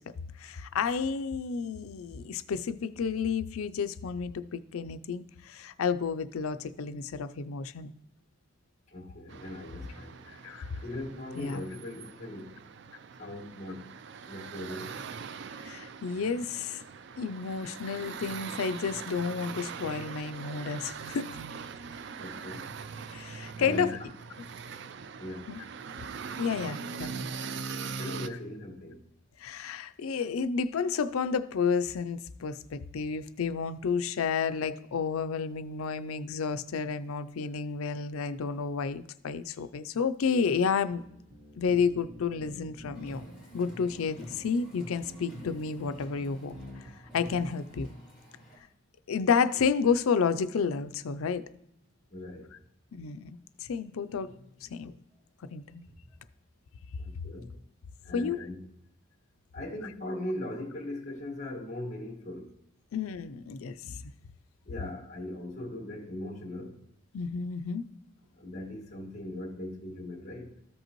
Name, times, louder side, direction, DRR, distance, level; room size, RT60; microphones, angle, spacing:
voice 1, 0.4-7.9 10.3-10.8 11.4-11.6 15.6-16.8 17.2-21.4 23.1-24.0 25.5-25.6 26.4-27.3 29.4-41.0 41.6-43.2 43.5-46.6 47.1-47.9 49.1-51.4 52.9-54.3 54.6-54.9 55.5-55.9 58.1-58.5 62.9-64.0 67.1-67.9, left 5 dB, 80° left, 0.4 m, -31 dB
voice 2, 8.9-10.1 10.8-12.5 13.2-13.9 14.3-15.0 22.2-22.7 23.5-24.1 25.2-25.5 28.0-29.0 52.1-52.5 55.1-55.5 57.0-57.5 58.0-58.6 59.5-62.5 64.6-66.8 68.3-70.5, left 1 dB, 35° left, 1.6 m, -39 dB
sound 1, 9.3-28.3, right 5 dB, 55° right, 0.3 m, -42 dB
sound 2, 40.9-46.9 47.3-47.5, equal, 70° right, 2.5 m, -48 dB
Car, 42.9-48.6, equal, 5° right, 2.4 m, -49 dB
13.5 x 5.3 x 3.0 m
head